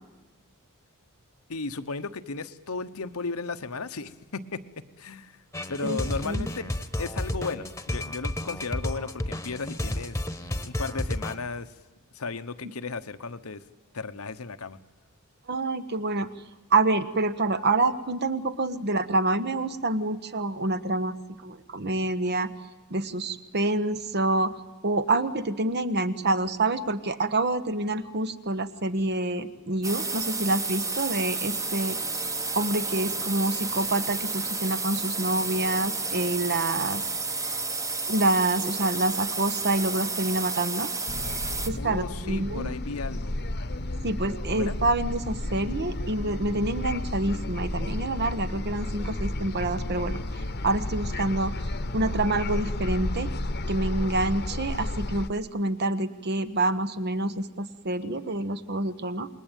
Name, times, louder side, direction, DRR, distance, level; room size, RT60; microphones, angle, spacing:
voice 1, 1.5-4.6 5.0-5.4 5.7-6.7 7.0-10.2 10.6-11.7 12.1-13.6 13.9-14.8 41.7-43.3 44.5-44.8, left 4 dB, 75° left, 10 dB, 1.1 m, -35 dB
sound 1, 5.5-11.3, left 1 dB, 15° left, 1.3 m, -31 dB
voice 2, 15.5-16.3 16.7-21.2 21.4-22.5 22.9-24.6 24.8-32.0 32.5-37.0 38.1-40.9 41.7-42.7 44.0-50.2 50.6-51.5 51.9-53.3 53.7-59.3, right 2 dB, 50° right, 12 dB, 1.2 m, -27 dB
sound 2, 29.8-41.7, right 3 dB, 15° right, 1.1 m, -31 dB
sound 3, 41.1-55.3, left 1 dB, 50° left, 1.2 m, -32 dB
28.0 x 20.5 x 9.1 m, 1.1 s
head